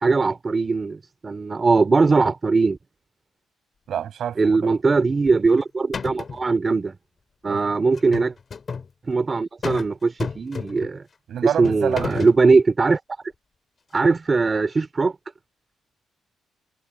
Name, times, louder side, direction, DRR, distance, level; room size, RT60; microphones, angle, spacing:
voice 1, 0.0-2.8 4.4-6.9 7.4-8.3 9.1-11.0 11.6-13.0 13.9-15.1, right 4 dB, 20° right, 2.9 m, -20 dB
voice 2, 3.9-4.7 7.5-7.6 11.3-12.2, right 9 dB, 55° right, 6.5 m, -28 dB
sound 1, 5.3-5.6 5.9-6.5 7.9-8.9 9.6-9.9 10.2-11.0 11.6-12.4, left 5 dB, 30° left, 2.7 m, -31 dB
cardioid pair, 175°, 0 cm